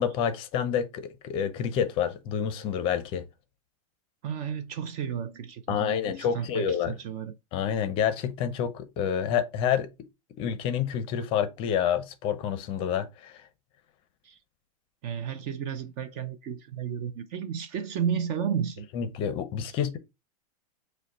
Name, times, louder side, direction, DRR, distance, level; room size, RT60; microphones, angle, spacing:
voice 1, 0.0-3.2 5.7-7.0 7.5-9.9 10.4-13.4 18.9-20.0, left 8 dB, 30° left, 0.6 m, -28 dB
voice 2, 4.2-7.3 14.2-14.4 15.0-18.9, right 8 dB, 30° right, 0.4 m, -32 dB
5.1 x 2.1 x 4.0 m
supercardioid pair, 160°, 19 cm